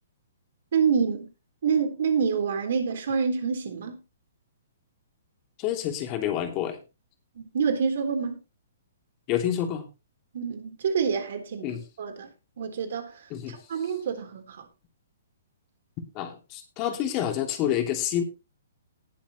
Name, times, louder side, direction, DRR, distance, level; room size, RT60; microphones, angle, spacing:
voice 1, 0.7-1.3 1.6-4.0 7.4-8.4 10.3-12.3 12.6-13.2 13.5-14.6, right 6 dB, 60° right, 3.8 m, -27 dB
voice 2, 5.6-6.8 9.3-9.9 11.6-11.8 13.3-13.6 16.1-18.2, left 10 dB, 30° left, 2.9 m, -28 dB
19.0 x 7.2 x 3.0 m
figure-of-eight pair, 120°, 0 cm